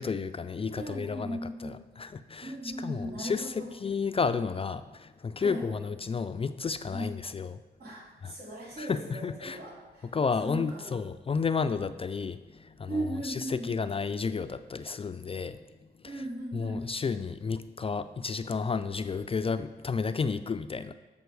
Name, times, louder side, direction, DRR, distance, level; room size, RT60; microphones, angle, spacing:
voice 1, 0.0-7.6 8.2-8.3 8.8-9.6 10.0-15.6 16.0-16.2 16.5-20.9, left 5 dB, 30° left, 11 dB, 0.3 m, -32 dB
voice 2, 0.7-1.8 2.4-3.7 5.4-5.8 6.9-7.1 7.8-10.1 10.4-11.0 12.9-13.7 16.0-16.9, right 1 dB, 60° right, -4 dB, 2.6 m, -37 dB
8.0 x 5.3 x 4.7 m, 1.2 s
cardioid pair, 60°, 18 cm